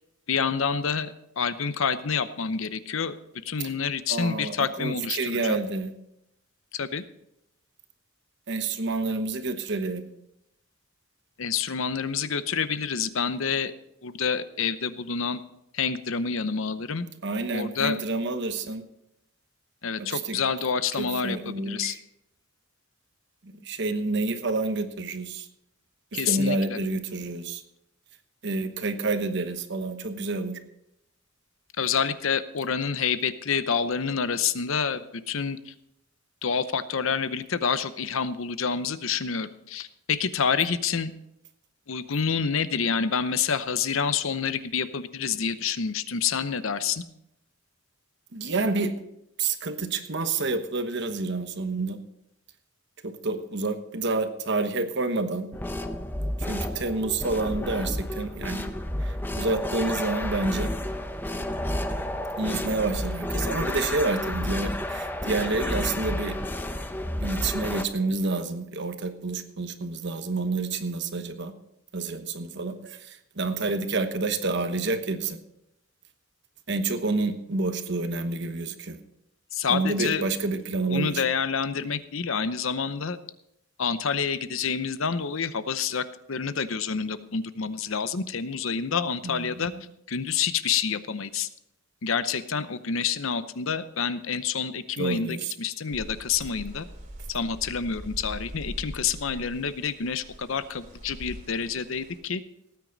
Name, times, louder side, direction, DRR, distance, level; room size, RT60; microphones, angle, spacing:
voice 1, 0.3-3.2 3.4-5.6 6.7-7.0 11.4-13.7 14.0-15.4 15.7-17.1 17.5-18.0 19.8-22.0 26.1-26.8 31.8-35.7 36.4-41.1 41.9-47.0 79.5-80.2 80.9-83.2 83.8-89.7 90.1-91.5 92.0-96.9 97.3-102.4, left 6 dB, 70° left, 13 dB, 0.7 m, -28 dB
voice 2, 4.1-5.9 8.5-10.0 17.2-18.8 20.0-20.4 21.0-22.0 23.4-25.5 26.1-27.6 28.4-30.6 48.3-49.0 49.4-52.0 53.0-55.5 56.4-58.7 59.0-60.7 62.4-66.4 67.2-71.5 71.9-75.4 76.7-79.0 79.7-81.2 89.2-89.8 95.0-95.5, right 3 dB, 55° right, 8 dB, 1.1 m, -29 dB
sound 1, 55.5-67.8, left 1 dB, 10° left, 0.7 m, -31 dB
sound 2, 95.9-102.2, equal, 35° right, 2.5 m, -42 dB
18.0 x 9.4 x 4.0 m, 0.82 s
head